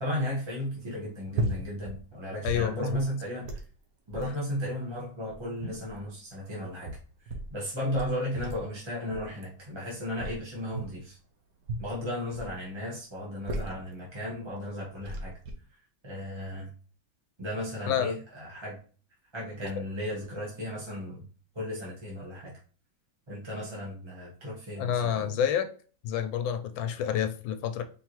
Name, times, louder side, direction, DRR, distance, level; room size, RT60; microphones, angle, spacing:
voice 1, 0.0-3.6 4.1-11.2 11.8-15.4 16.0-16.7 17.4-18.8 19.3-21.3 21.5-22.5 23.3-25.3, left 1 dB, 20° right, 1.0 m, -35 dB
sound 1, 1.3-2.0 2.3-3.1 3.4-3.7 4.1-4.4 5.0-6.0 6.7-7.5 7.9-8.7 9.1-9.4 10.2-11.0 11.6-12.6 13.2-13.9 14.6-14.7 15.0-15.5, right 2 dB, 55° right, 1.2 m, -35 dB
voice 2, 2.4-3.0 4.2-4.3 17.9-18.1 24.8-25.7 26.0-27.8, left 9 dB, 90° left, 1.4 m, -29 dB
4.6 x 3.6 x 3.0 m
omnidirectional pair, 2.1 m